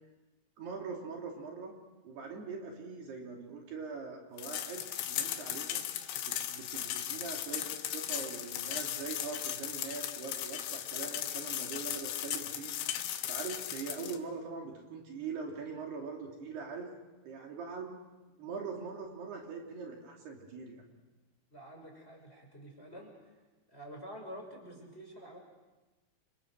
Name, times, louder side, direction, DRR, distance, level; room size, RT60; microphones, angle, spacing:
voice 1, 0.6-1.8 2.0-5.8 6.3-12.7 13.3-16.9 17.2-18.0 18.4-20.8, right 5 dB, 65° right, 0 dB, 4.8 m, -42 dB
sound 1, 4.4-14.2, left 11 dB, 85° left, 3.8 m, -37 dB
voice 2, 21.5-23.3 23.7-25.4, equal, 15° left, 1 dB, 5.7 m, -48 dB
28.5 x 28.0 x 6.4 m, 1.1 s
omnidirectional pair, 5.3 m